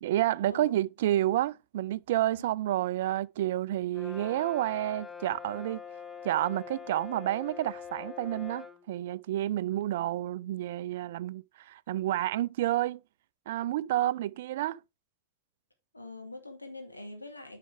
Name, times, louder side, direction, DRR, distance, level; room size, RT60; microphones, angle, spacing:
voice 1, 0.0-5.8 6.2-13.0 13.5-14.8, right 14 dB, 55° right, 0.4 m, -30 dB
Brass instrument, 3.9-8.8, left 7 dB, ahead, 0.9 m, -44 dB
voice 2, 15.9-17.6, left 2 dB, 80° left, 2.2 m, -44 dB
10.0 x 5.7 x 3.5 m
figure-of-eight pair, 90°, 0 cm